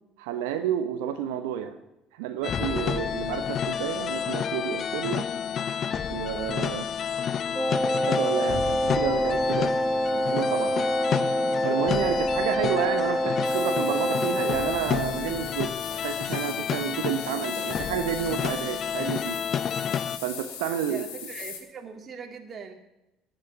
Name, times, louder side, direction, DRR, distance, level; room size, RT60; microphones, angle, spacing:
voice 1, 0.2-1.8 2.1-5.3 6.1-6.9 8.1-9.7 10.1-10.9 11.6-19.4 20.2-21.0, right 9 dB, 70° right, 8 dB, 1.0 m, -30 dB
sound 1, 2.4-20.2, left 8 dB, 45° left, 0.7 m, -30 dB
Wind instrument woodwind instrument, 7.5-14.8, equal, 10° right, 1.1 m, -26 dB
sound 2, 13.4-21.6, left 7 dB, 70° left, 3.2 m, -41 dB
voice 2, 20.8-22.7, right 5 dB, 35° right, 2 dB, 2.2 m, -41 dB
18.5 x 6.6 x 9.6 m, 0.91 s
hypercardioid pair, 60°, 0 cm